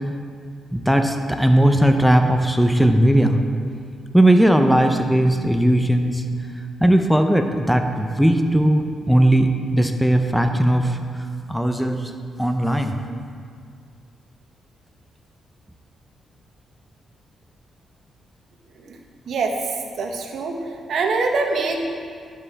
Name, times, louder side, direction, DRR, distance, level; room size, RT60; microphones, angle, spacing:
voice 1, 0.7-3.4 4.1-6.2 6.8-9.5 9.7-11.0 11.5-12.0 12.4-13.0, right 1 dB, ahead, 5 dB, 0.6 m, -17 dB
voice 2, 20.0-20.5 20.9-21.8, right 4 dB, 65° right, 3 dB, 1.0 m, -23 dB
10.5 x 5.6 x 4.1 m, 2.1 s
cardioid pair, 85°, 0 cm